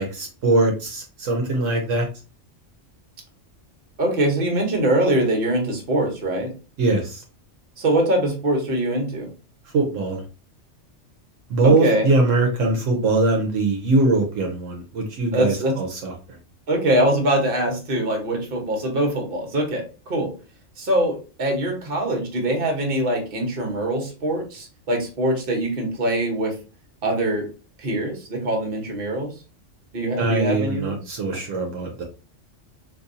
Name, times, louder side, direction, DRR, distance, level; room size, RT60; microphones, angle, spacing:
voice 1, 0.0-2.1 6.8-7.2 9.7-10.2 11.5-16.4 30.2-32.0, right 2 dB, 75° right, 2 dB, 1.1 m, -22 dB
voice 2, 4.0-6.5 7.8-9.3 11.6-12.1 15.3-15.8 16.7-20.3 20.8-26.5 27.0-27.5 27.8-29.3 29.9-31.0, right 1 dB, 50° right, 2 dB, 1.2 m, -23 dB
4.0 x 2.7 x 2.6 m, 0.33 s
omnidirectional pair, 1.3 m